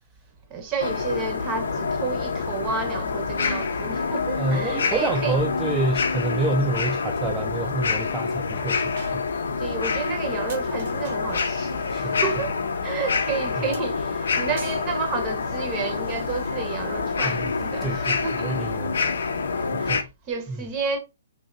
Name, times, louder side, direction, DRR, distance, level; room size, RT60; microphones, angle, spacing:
voice 1, 0.5-5.4 9.6-12.5 12.8-18.5 19.6-21.0, right 5 dB, 30° right, 0.7 m, -31 dB
sound 1, 0.8-20.0, left 5 dB, 75° left, 0.4 m, -27 dB
voice 2, 4.4-9.3 11.9-12.2 13.6-13.7 17.2-17.5 17.8-19.0 19.7-20.1 20.5-20.7, right 3 dB, 15° right, 0.3 m, -28 dB
sound 2, 4.5-4.7 6.7-6.8 7.0-7.3 7.9-8.0 8.4-8.5 9.0-9.6 10.0-10.1 10.5-11.6 13.7-14.9 15.9-16.5, right 4 dB, 55° right, 0.8 m, -45 dB
3.1 x 2.7 x 2.5 m
hypercardioid pair, 140°, 0 cm